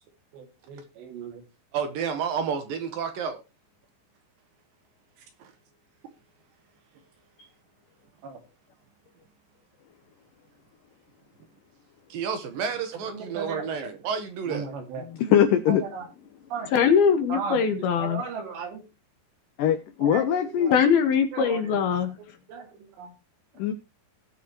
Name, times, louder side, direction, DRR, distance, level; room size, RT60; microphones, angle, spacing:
voice 1, 0.3-1.4 8.2-8.4 13.1-13.6 14.5-15.0 15.7-16.0 16.5-16.7 17.3-18.8 20.0-20.7 21.3-21.7 22.5-22.7 23.0-23.1, right 5 dB, 80° right, 5 dB, 4.5 m, -36 dB
voice 2, 1.7-3.4 5.4-5.5 12.1-14.7, right 6 dB, 65° right, 8 dB, 2.6 m, -30 dB
voice 3, 15.1-15.8 19.6-20.7 23.6-23.7, left 9 dB, 80° left, 10 dB, 1.9 m, -22 dB
voice 4, 16.7-18.2 20.7-22.1, left 7 dB, 65° left, 7 dB, 3.3 m, -21 dB
19.0 x 6.9 x 3.0 m, 0.26 s
omnidirectional pair, 4.9 m